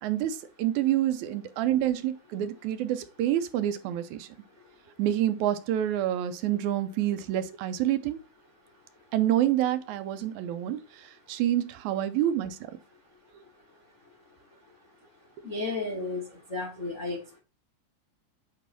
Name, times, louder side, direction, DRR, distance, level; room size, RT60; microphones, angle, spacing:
voice 1, 0.0-4.3 5.0-8.2 9.1-12.6 13.3-13.4, right 12 dB, 80° right, 1.9 m, -27 dB
voice 2, 15.4-16.2 16.5-17.4, left 3 dB, 65° left, 0.7 m, -33 dB
7.6 x 3.1 x 4.0 m
omnidirectional pair, 3.4 m